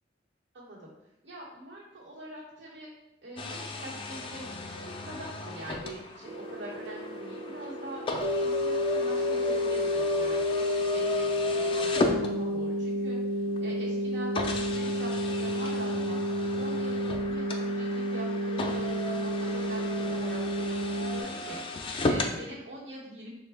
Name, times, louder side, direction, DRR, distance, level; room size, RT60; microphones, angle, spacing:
voice 1, 0.5-0.9 1.2-2.9 3.2-13.2 13.6-16.2 16.6-23.3, right 1 dB, 90° right, -8 dB, 0.9 m, -43 dB
sound 1, 3.4-12.8 13.6-13.7 14.3-22.4, left 1 dB, 30° left, 0.3 m, -35 dB
sound 2, 6.3-21.2, left 1 dB, 65° right, 0.3 m, -30 dB
4.2 x 2.1 x 3.3 m, 0.90 s
head